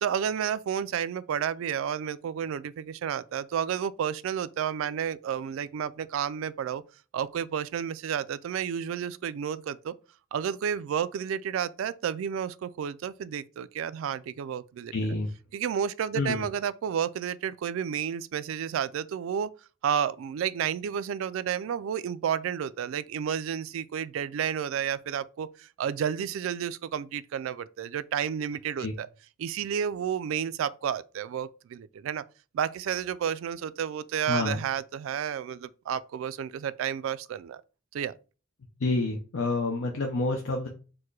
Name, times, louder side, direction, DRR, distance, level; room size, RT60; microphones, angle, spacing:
voice 1, 0.0-6.8 7.1-9.9 10.3-14.9 15.5-19.5 19.8-29.1 29.4-32.2 32.5-37.6 37.9-38.1, right 8 dB, 80° right, 0.3 m, -31 dB
voice 2, 14.9-15.3 16.1-16.5 28.8-28.9 34.3-34.6 38.8-40.7, left 2 dB, 85° left, 0.7 m, -28 dB
4.6 x 2.1 x 4.6 m
head